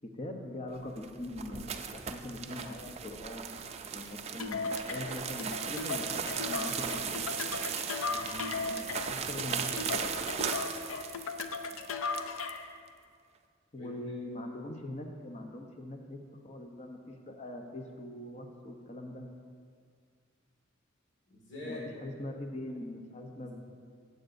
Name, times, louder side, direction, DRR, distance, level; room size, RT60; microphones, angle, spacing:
voice 1, 0.0-7.6 9.1-10.0 13.7-16.2 16.4-19.2 21.6-23.5, left 1 dB, 35° left, 3 dB, 0.8 m, -42 dB
sound 1, 0.8-12.6, right 7 dB, 30° right, 0.4 m, -37 dB
sound 2, 4.4-12.7, left 4 dB, 80° left, 0.5 m, -37 dB
voice 2, 8.0-8.9 11.6-11.9 13.7-13.9 21.3-21.8 23.4-23.5, left 2 dB, 60° left, -4 dB, 1.8 m, -46 dB
15.5 x 7.9 x 2.6 m, 2.1 s
head